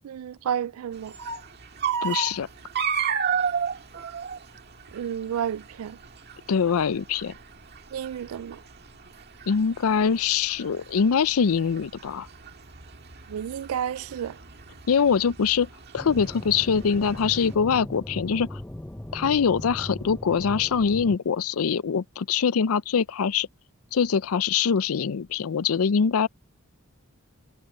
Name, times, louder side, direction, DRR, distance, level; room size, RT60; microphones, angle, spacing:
voice 1, 0.0-1.1 4.9-6.0 7.9-8.6 13.3-14.4, right 9 dB, 85° right, 0.3 m, -31 dB
sound 1, 1.0-17.5, right 7 dB, 50° right, 1.8 m, -33 dB
voice 2, 2.0-2.5 6.5-7.3 9.5-12.3 14.9-15.7 15.9-18.6 19.1-23.5 23.9-26.3, left 6 dB, 85° left, 0.5 m, -23 dB
sound 2, 15.9-21.2, left 1 dB, 10° left, 0.5 m, -38 dB
head